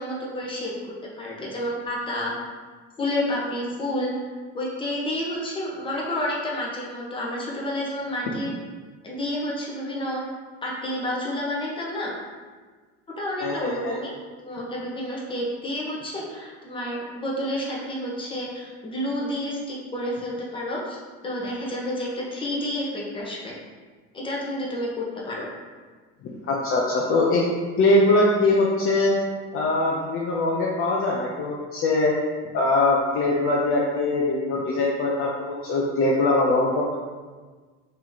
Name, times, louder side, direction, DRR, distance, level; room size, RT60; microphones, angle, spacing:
voice 1, 0.0-2.4 3.0-4.1 4.5-8.5 9.0-10.2 10.6-12.1 13.2-14.1 14.4-23.5 24.1-25.5, left 1 dB, 15° left, -4 dB, 0.9 m, -30 dB
voice 2, 13.4-14.0 26.2-27.4 27.8-29.1 29.5-32.1 32.5-37.0, left 2 dB, 40° left, -3 dB, 0.6 m, -22 dB
3.0 x 2.8 x 3.8 m, 1.4 s
supercardioid pair, 120°, 32 cm